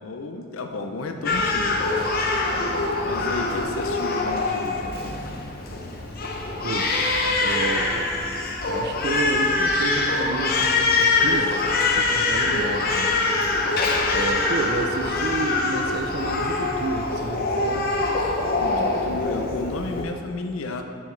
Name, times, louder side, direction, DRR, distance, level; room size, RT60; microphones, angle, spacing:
voice 1, 0.0-1.8 3.0-5.2 18.6-20.8, left 3 dB, 85° left, 5 dB, 0.6 m, -32 dB
Crying sobbing, 1.2-20.0, left 3 dB, 45° left, 0.6 m, -24 dB
voice 2, 7.4-8.1 8.7-11.5 11.9-13.1 14.1-18.0, right 3 dB, 50° right, 5 dB, 0.4 m, -30 dB
6.8 x 6.3 x 3.2 m, 2.2 s
head